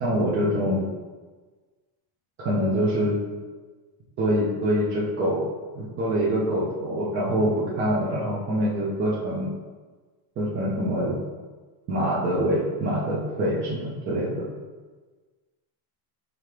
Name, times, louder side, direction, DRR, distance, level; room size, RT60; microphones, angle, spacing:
voice 1, 0.0-0.9 2.4-3.2 4.2-5.4 5.8-9.5 10.4-11.2 11.9-14.4, equal, 25° right, -6 dB, 0.4 m, -25 dB
5.0 x 2.8 x 3.1 m, 1.3 s
cardioid pair, 165°, 50 cm